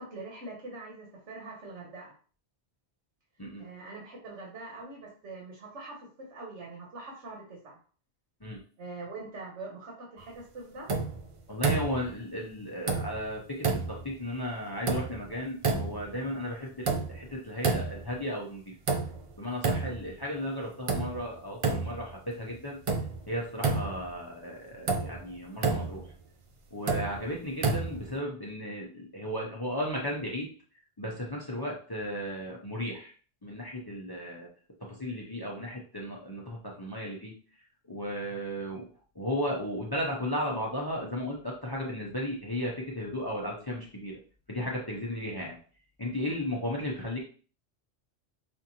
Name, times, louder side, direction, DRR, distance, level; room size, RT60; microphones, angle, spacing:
voice 1, 0.0-2.1 3.6-7.8 8.8-10.9, right 3 dB, 90° right, -2 dB, 1.4 m, -43 dB
sound 1, 10.9-11.3 11.6-12.1 12.9-13.3 13.6-14.1 14.9-15.3 15.6-16.1 16.9-17.3 17.6-18.2 18.9-19.3 19.6-20.1 20.9-21.3 21.6-22.1 22.9-23.2 23.6-24.2 24.9-25.2 25.6-26.1 26.9-27.2 27.6-28.1, right 4 dB, 60° right, 0.3 m, -29 dB
voice 2, 11.5-18.6 19.4-22.8 23.3-26.0 26.7-30.5 31.0-33.1 33.4-34.5 34.8-37.3 37.9-38.9 39.2-44.2 44.5-45.6 46.0-47.2, equal, 25° left, -2 dB, 0.5 m, -35 dB
5.1 x 2.5 x 2.8 m, 0.41 s
omnidirectional pair, 1.2 m